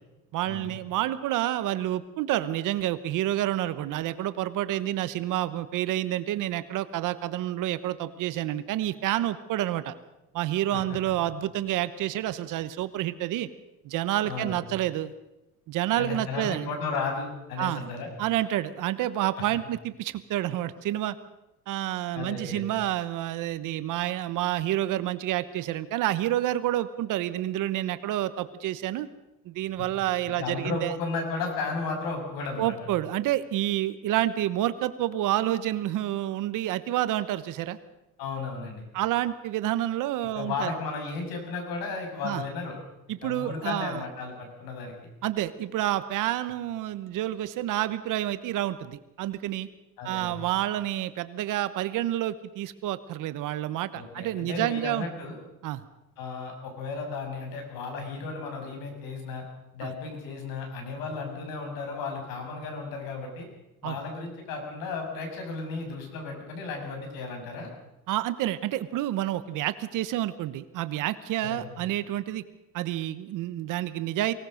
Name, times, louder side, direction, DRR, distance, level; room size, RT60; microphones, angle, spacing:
voice 1, 0.3-9.9 10.3-13.5 13.8-15.1 15.7-16.7 17.6-17.8 18.2-21.2 21.7-29.1 29.4-31.0 32.6-37.8 38.9-40.7 42.2-42.4 43.1-44.0 45.2-49.7 50.0-55.1 55.6-55.8 59.8-59.9 63.8-64.0 68.1-72.4 72.7-74.3, right 13 dB, 60° right, 13 dB, 1.1 m, -29 dB
voice 2, 14.2-14.6 16.0-18.1 22.1-22.6 30.4-32.8 38.2-38.9 40.3-42.7 43.2-44.9 50.0-50.4 53.9-55.4 56.2-59.4 59.7-63.5 63.8-67.7 71.4-71.7, left 4 dB, 80° left, 3 dB, 6.7 m, -34 dB
23.5 x 18.0 x 6.5 m, 0.94 s
cardioid pair, 165°, 36 cm